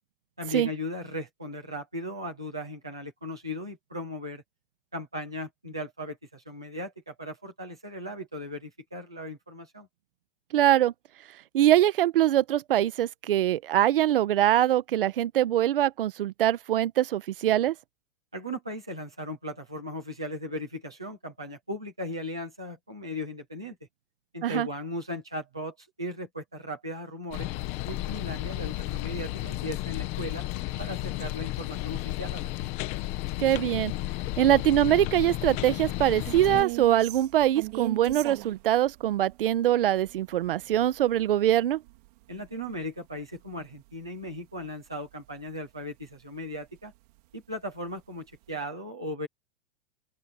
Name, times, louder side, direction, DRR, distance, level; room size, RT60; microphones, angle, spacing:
voice 1, 0.4-4.4 4.9-9.9 18.3-23.8 24.3-27.5 27.8-30.5 30.8-32.7 42.3-46.9 47.3-49.3, left 1 dB, 5° right, 0.3 m, -37 dB
voice 2, 10.5-10.9 11.5-17.7 24.4-24.7 33.4-33.9 34.4-41.8, right 12 dB, 50° right, 1.2 m, -23 dB
sound 1, 27.3-36.6, left 17 dB, 20° left, 1.0 m, -33 dB
sound 2, 35.2-45.6 46.0-46.1 46.6-47.3 47.7-47.8 48.2-48.6, right 24 dB, 35° right, 3.7 m, -42 dB
open air
hypercardioid pair, 175°, 34 cm